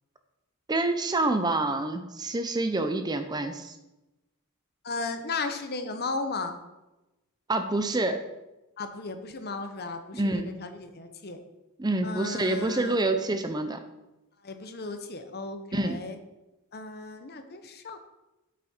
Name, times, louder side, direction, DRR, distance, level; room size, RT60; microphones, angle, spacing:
voice 1, 0.7-3.7 7.5-8.2 10.1-10.6 11.8-13.8 15.7-16.0, right 2 dB, 20° right, 8 dB, 0.6 m, -27 dB
voice 2, 4.8-6.6 8.8-11.4 12.0-13.0 14.4-16.2 16.7-18.0, left 3 dB, 45° left, 8 dB, 0.9 m, -35 dB
8.6 x 8.4 x 4.4 m, 0.99 s
head